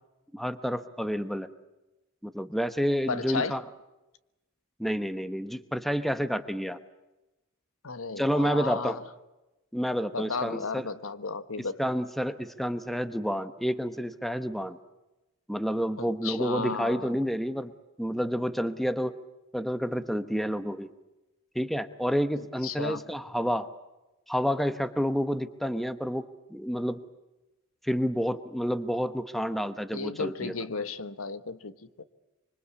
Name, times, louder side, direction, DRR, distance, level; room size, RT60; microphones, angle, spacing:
voice 1, 0.3-1.5 2.2-3.6 4.8-6.8 8.2-9.0 9.7-10.9 11.8-14.8 15.5-17.7 18.0-19.1 19.5-20.9 21.5-23.7 24.3-27.0 27.8-30.5, equal, ahead, 1.0 m, -29 dB
voice 2, 3.1-3.6 7.8-9.0 10.1-11.8 16.0-17.1 22.4-23.0 29.9-32.0, left 4 dB, 75° left, 1.3 m, -34 dB
25.5 x 25.0 x 8.5 m
head